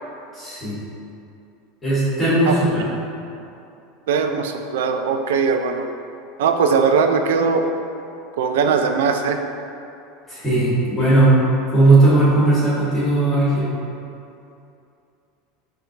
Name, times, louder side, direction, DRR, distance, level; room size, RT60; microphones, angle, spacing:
voice 1, 0.3-0.8 1.8-2.8 10.3-11.3 11.7-13.6, right 2 dB, 10° left, -13 dB, 1.1 m, -17 dB
voice 2, 4.1-5.9 6.4-7.7 8.4-9.4, right 5 dB, 85° right, 6 dB, 0.3 m, -19 dB
5.6 x 3.4 x 2.6 m, 2.7 s
supercardioid pair, 175°, 0 cm